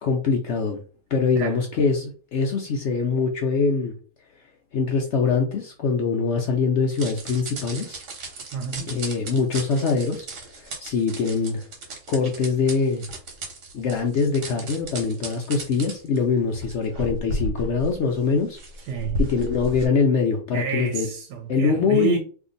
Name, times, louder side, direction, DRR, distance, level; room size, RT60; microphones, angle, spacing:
voice 1, 0.0-0.8 1.1-3.9 4.7-8.0 8.9-10.3 10.5-11.7 12.1-13.0 13.7-18.6 19.2-21.1 21.5-22.2, left 5 dB, 70° left, 0.6 m, -23 dB
voice 2, 1.3-1.6 8.5-8.9 18.9-19.2 20.5-22.2, right 7 dB, 90° right, 1.2 m, -29 dB
sound 1, 6.9-19.9, right 1 dB, 70° right, 1.4 m, -34 dB
2.8 x 2.5 x 3.8 m
omnidirectional pair, 1.7 m